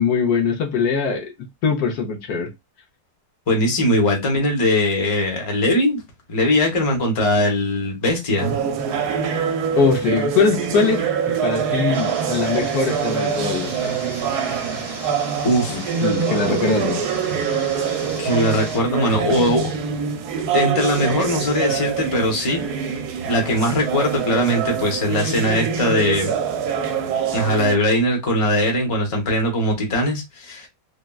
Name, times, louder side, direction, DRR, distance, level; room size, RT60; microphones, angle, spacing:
voice 1, 0.0-2.5 9.8-14.0 15.7-17.1, left 5 dB, 75° left, 1.2 m, -22 dB
voice 2, 3.5-6.0 6.3-8.5 15.4-15.8 18.2-19.7 20.5-22.9 23.3-26.3 27.3-30.7, left 1 dB, 25° left, 0.8 m, -20 dB
sound 1, 8.4-27.8, right 7 dB, 80° right, 1.1 m, -25 dB
sound 2, 11.9-18.8, right 2 dB, 35° right, 0.6 m, -35 dB
3.4 x 2.2 x 2.2 m
omnidirectional pair, 1.7 m